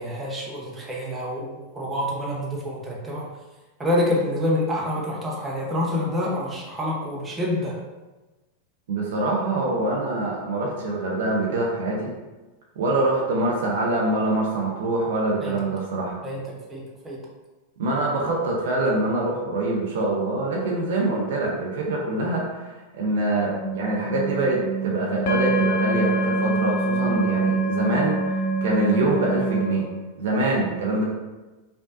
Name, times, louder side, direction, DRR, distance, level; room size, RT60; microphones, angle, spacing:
voice 1, 0.0-3.3 3.8-7.8 15.4-15.5 16.2-16.4 16.7-17.2, left 1 dB, 10° right, -4 dB, 0.9 m, -27 dB
voice 2, 8.9-12.1 12.8-16.2 17.8-29.9 30.2-31.0, right 2 dB, 55° right, -2 dB, 0.7 m, -24 dB
sound 1, 23.4-29.7, right 2 dB, 50° left, 0.5 m, -25 dB
5.1 x 2.3 x 2.6 m, 1.2 s
figure-of-eight pair, 90°, 0 cm